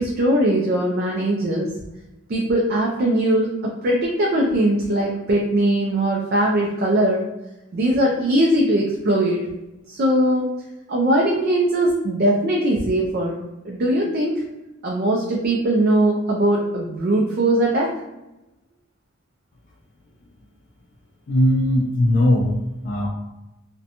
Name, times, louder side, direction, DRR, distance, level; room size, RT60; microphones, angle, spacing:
voice 1, 0.0-1.7 2.3-7.2 7.7-9.4 9.9-10.5 10.9-13.4 13.6-14.3 14.8-17.9, right 1 dB, 50° right, -2 dB, 0.4 m, -20 dB
voice 2, 21.3-23.1, left 1 dB, 45° left, -3 dB, 0.3 m, -19 dB
2.7 x 2.1 x 2.5 m, 0.99 s
head